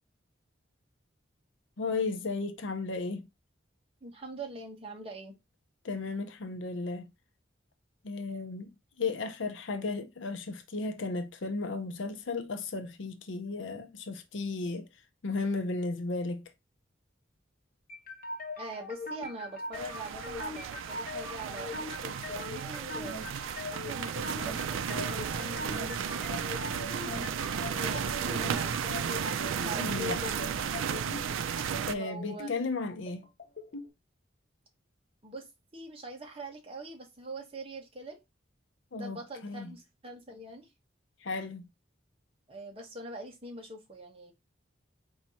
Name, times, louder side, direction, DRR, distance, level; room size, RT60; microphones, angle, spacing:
voice 1, 1.8-3.3 5.8-7.1 8.0-14.9 15.2-16.4 29.8-30.2 31.9-33.3 38.9-39.7 41.2-41.7, left 3 dB, 75° left, 0.6 m, -34 dB
voice 2, 4.0-5.3 18.6-26.2 27.8-29.0 29.6-30.4 31.9-32.5 35.2-35.5 35.7-38.2 38.9-40.7 42.5-44.3, right 1 dB, 30° right, 1.2 m, -43 dB
sound 1, 17.9-33.9, left 2 dB, 45° left, 1.2 m, -41 dB
sound 2, 19.7-31.9, right 7 dB, 90° right, 0.4 m, -34 dB
4.5 x 2.8 x 4.1 m
head